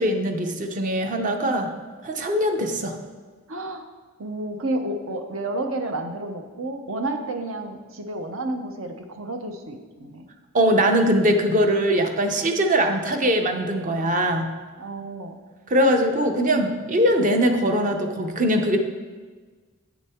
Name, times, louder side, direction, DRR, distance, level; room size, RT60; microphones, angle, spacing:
voice 1, 0.0-1.7 2.0-3.0 10.5-14.5 15.7-18.8, equal, 35° right, 5 dB, 0.7 m, -21 dB
voice 2, 3.5-3.8 4.2-10.3 14.8-15.4, right 2 dB, 65° right, 6 dB, 0.8 m, -31 dB
8.4 x 7.2 x 3.6 m, 1.4 s
head